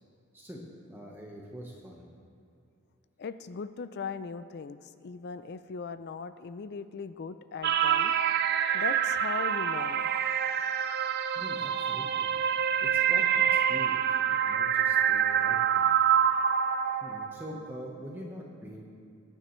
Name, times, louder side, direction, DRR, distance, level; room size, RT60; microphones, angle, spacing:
voice 1, 0.9-2.0 11.3-12.3 12.8-15.9 17.0-18.9, equal, 10° right, -2 dB, 1.0 m, -44 dB
voice 2, 3.2-8.1 8.7-10.1, left 5 dB, 50° left, 12 dB, 0.4 m, -39 dB
sound 1, 7.6-17.7, right 9 dB, 50° right, 0.5 m, -26 dB
20.5 x 9.8 x 3.1 m, 2.5 s
head